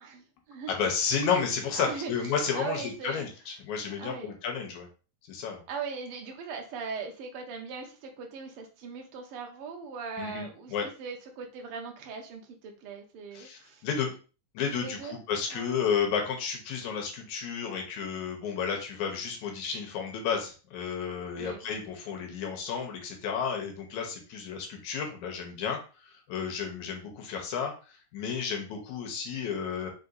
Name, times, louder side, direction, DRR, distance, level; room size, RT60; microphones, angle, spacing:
voice 1, 0.0-0.7 1.2-1.3 1.7-3.3 4.0-4.3 5.7-13.9 14.7-15.2 15.5-15.8 21.3-21.7, right 5 dB, 70° right, 3 dB, 1.4 m, -40 dB
voice 2, 0.7-4.9 5.3-5.6 10.2-10.9 13.3-14.1 14.5-29.9, left 6 dB, 80° left, 3 dB, 2.2 m, -32 dB
5.0 x 3.9 x 2.5 m, 0.34 s
omnidirectional pair, 3.5 m